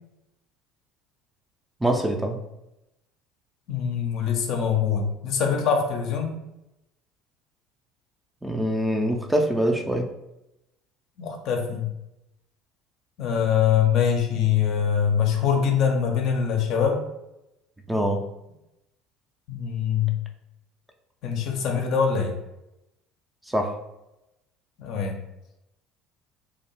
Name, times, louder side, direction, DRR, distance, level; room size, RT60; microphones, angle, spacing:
voice 1, 1.8-2.4 8.4-10.1 17.9-18.2 23.5-23.7, right 1 dB, 5° right, 3 dB, 0.3 m, -24 dB
voice 2, 3.7-6.4 11.2-11.9 13.2-17.0 19.5-20.2 21.2-22.3 24.8-25.2, left 7 dB, 55° left, 2 dB, 0.5 m, -23 dB
2.6 x 2.1 x 2.8 m, 0.90 s
figure-of-eight pair, 60°, 0 cm